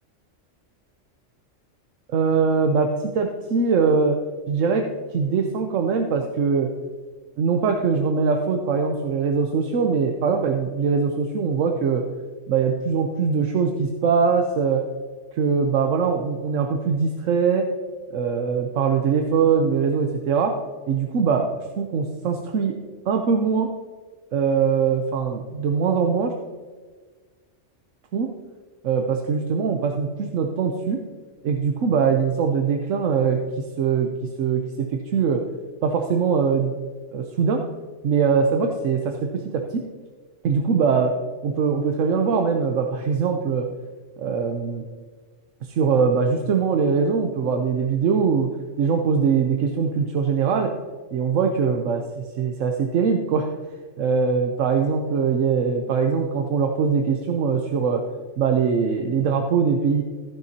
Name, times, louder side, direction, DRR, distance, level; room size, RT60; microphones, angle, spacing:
voice 1, 2.1-4.2 4.5-4.8 5.1-6.7 7.4-12.0 12.5-14.8 15.3-17.7 18.1-20.5 20.9-21.5 21.8-22.7 23.1-23.7 24.3-26.3 28.1-28.3 28.8-31.0 31.4-34.1 34.4-35.4 35.8-36.7 37.1-37.6 38.0-39.8 40.4-41.1 41.4-43.7 44.2-44.8 45.6-48.5 48.8-50.7 51.1-53.5 54.0-58.0 58.4-60.0, right 5 dB, 80° right, 4 dB, 1.1 m, -22 dB
14.5 x 10.5 x 2.8 m, 1.5 s
omnidirectional pair, 1.3 m